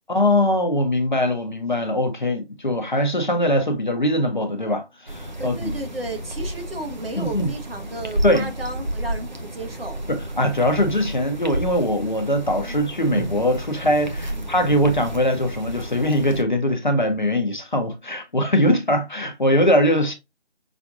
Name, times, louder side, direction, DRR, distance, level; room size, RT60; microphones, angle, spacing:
voice 1, 0.1-5.7 7.2-7.5 8.2-8.5 10.1-20.1, left 1 dB, 45° left, 0.7 m, -21 dB
sound 1, 5.1-16.4, right 1 dB, 40° right, 0.7 m, -31 dB
voice 2, 5.4-10.0 12.6-12.8 14.3-14.9, right 1 dB, 55° right, 1.1 m, -34 dB
5.9 x 2.5 x 2.5 m
figure-of-eight pair, 170°, 34 cm